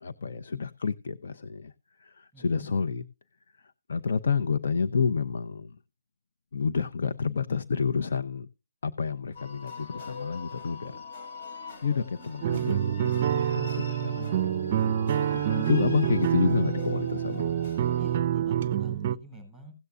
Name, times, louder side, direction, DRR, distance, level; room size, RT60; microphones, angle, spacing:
voice 1, 0.0-1.7 2.0-3.0 3.9-5.7 6.5-8.5 8.8-11.0 11.8-17.4, left 5 dB, 65° left, 0.7 m, -29 dB
voice 2, 2.3-2.7 14.1-14.2 17.9-19.7, right 1 dB, 5° left, 6.2 m, -48 dB
sound 1, 9.4-18.2, left 3 dB, 45° left, 2.6 m, -43 dB
sound 2, 12.4-19.2, right 10 dB, 35° right, 0.4 m, -27 dB
17.0 x 8.0 x 2.5 m
hypercardioid pair, 160°, 0 cm